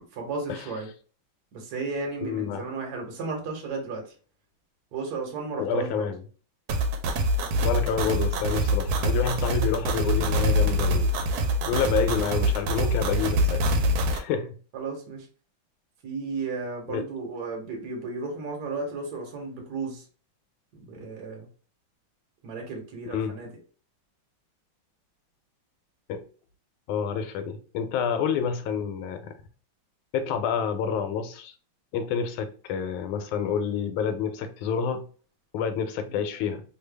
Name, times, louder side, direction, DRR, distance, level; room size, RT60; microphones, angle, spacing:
voice 1, 0.2-0.9 1.5-4.1 4.9-6.1 14.7-15.3 16.0-20.0 20.7-21.5 22.4-23.5 36.1-36.2, right 4 dB, 60° right, 1.3 m, -34 dB
voice 2, 2.2-2.7 5.6-6.2 7.6-11.1 11.7-13.6 14.1-14.5 16.9-17.0 23.1-23.3 26.1-26.2 26.9-29.3 30.1-31.5 31.9-35.0 35.5-36.6, left 7 dB, 90° left, 1.4 m, -28 dB
sound 1, 6.7-14.2, equal, 85° right, 1.4 m, -24 dB
3.3 x 2.2 x 3.2 m
omnidirectional pair, 2.2 m